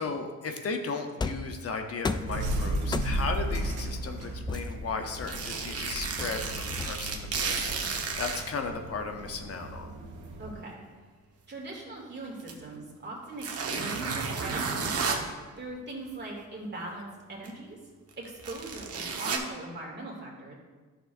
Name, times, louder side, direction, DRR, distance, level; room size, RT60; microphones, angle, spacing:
voice 1, 0.0-9.9, left 4 dB, 50° left, 5 dB, 0.8 m, -36 dB
sound 1, 1.2-1.6 2.0-2.4 2.9-3.4 4.5-5.6 6.2-7.2, left 4 dB, 15° left, 0.3 m, -34 dB
sound 2, 2.2-10.5, right 1 dB, 80° right, 1.3 m, -35 dB
sound 3, 4.5-4.6 5.2-8.4 9.3-9.4 12.4-12.5 13.4-15.2 17.4-17.5 18.1-19.4, right 5 dB, 55° right, 1.2 m, -32 dB
voice 2, 10.4-10.8 11.5-13.5 13.8-15.2 15.6-17.8 18.2-20.5, right 2 dB, 35° right, -2 dB, 2.4 m, -40 dB
11.0 x 6.3 x 2.6 m, 1.3 s
cardioid pair, 90°, 30 cm